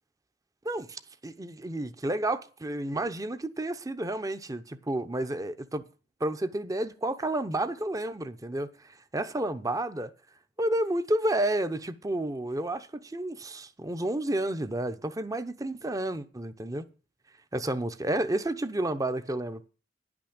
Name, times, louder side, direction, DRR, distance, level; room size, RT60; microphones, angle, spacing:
voice 1, 0.7-5.8 6.2-10.1 10.6-16.9 17.5-19.7, right 1 dB, 20° right, 0.8 m, -31 dB
11.0 x 6.2 x 8.7 m
head